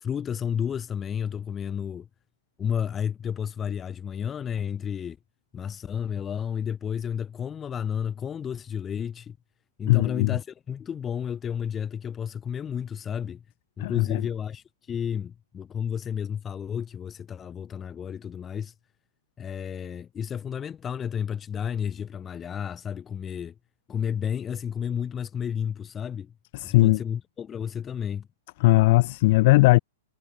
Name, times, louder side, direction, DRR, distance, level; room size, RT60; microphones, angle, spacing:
voice 1, 0.0-2.1 2.6-5.2 5.5-9.4 9.8-13.4 13.8-18.7 19.4-23.5 23.9-26.3 26.6-28.3, left 8 dB, 15° left, 1.4 m, -31 dB
voice 2, 9.9-10.3 13.8-14.2 26.5-27.0 28.6-29.8, left 21 dB, 50° left, 1.0 m, -19 dB
hypercardioid pair, 150°, 0 cm